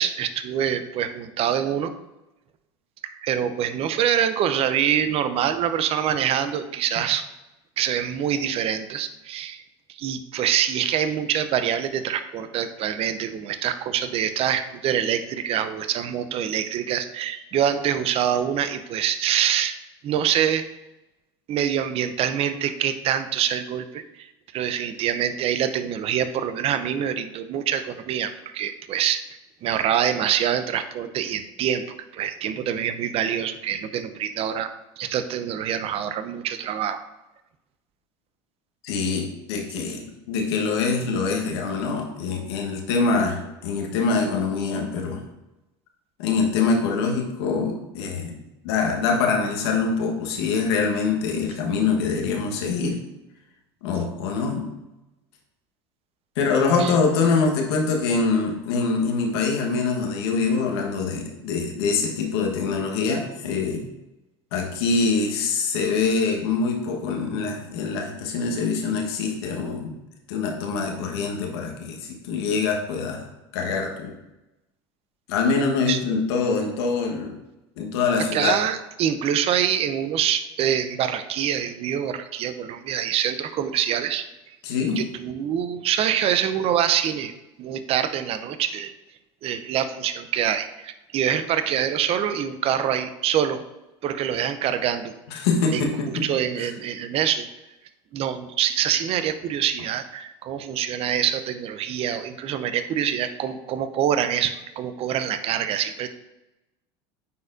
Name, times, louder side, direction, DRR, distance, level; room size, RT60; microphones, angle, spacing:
voice 1, 0.0-1.9 3.0-7.2 7.8-9.6 9.9-19.8 20.0-20.6 21.5-29.2 29.6-31.8 32.1-37.0 56.8-56.9 75.9-76.0 78.2-84.3 85.0-87.3 87.6-88.9 89.4-93.6 94.0-95.1 95.7-95.9 96.2-97.5 98.1-106.1, right 9 dB, 50° right, 11 dB, 0.6 m, -25 dB
voice 2, 38.8-40.0 40.3-45.2 46.2-48.4 48.6-53.0 53.8-54.7 56.4-63.8 64.5-69.9 70.3-73.2 73.5-74.1 75.3-77.4 77.8-78.6 84.6-85.0 95.3-96.3 96.6-96.7, left 4 dB, 80° left, 1 dB, 1.3 m, -24 dB
9.3 x 4.2 x 2.6 m, 0.96 s
hypercardioid pair, 90°, 13 cm